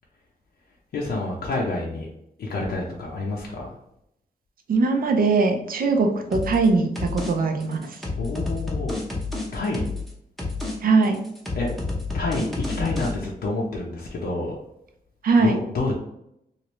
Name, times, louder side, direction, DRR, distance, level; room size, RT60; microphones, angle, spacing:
voice 1, 0.9-2.1 2.4-3.7 8.2-9.0 9.5-9.8 11.5-11.7 12.1-14.6 15.4-15.9, left 2 dB, 85° left, -3 dB, 0.6 m, -28 dB
voice 2, 4.7-8.0 10.8-11.2 15.2-15.6, right 3 dB, 65° right, 4 dB, 0.5 m, -21 dB
sound 1, 6.3-6.7 7.0-7.3 7.6-10.1 10.4-10.8 11.0-13.1, left 3 dB, ahead, 0.8 m, -29 dB
3.1 x 2.5 x 3.0 m, 0.78 s
wide cardioid pair, 135°, 16 cm